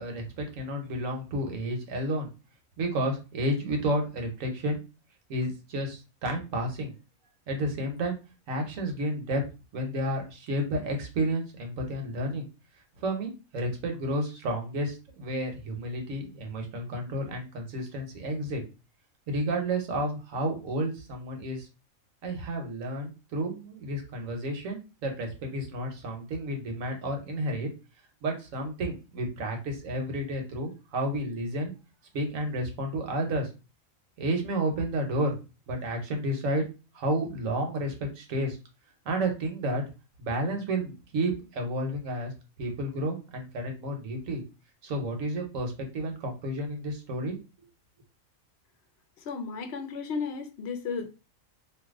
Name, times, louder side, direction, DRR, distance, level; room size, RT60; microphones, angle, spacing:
voice 1, 0.0-2.3 2.8-4.8 5.3-6.9 7.5-8.2 8.5-9.4 9.7-12.5 13.0-18.6 19.3-21.7 22.2-27.7 28.2-31.7 32.1-33.5 34.2-35.4 35.7-36.6 36.9-38.6 39.0-39.8 40.2-42.3 42.6-44.4 44.8-47.3, right 1 dB, 75° right, 1.3 m, -31 dB
voice 2, 49.2-51.1, left 5 dB, 60° left, 0.8 m, -34 dB
2.7 x 2.6 x 3.6 m
omnidirectional pair, 1.4 m